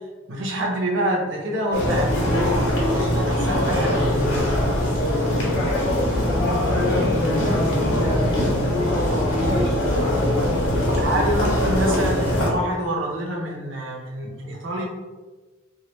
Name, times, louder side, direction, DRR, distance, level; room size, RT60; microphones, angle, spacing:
voice 1, 0.3-4.0 11.0-14.8, right 1 dB, 65° right, -1 dB, 0.6 m, -27 dB
sound 1, 1.7-12.5, left 1 dB, 75° left, 1.0 m, -22 dB
voice 2, 5.4-11.4, left 1 dB, 25° left, -9 dB, 0.5 m, -30 dB
2.9 x 2.3 x 3.0 m, 1.3 s
head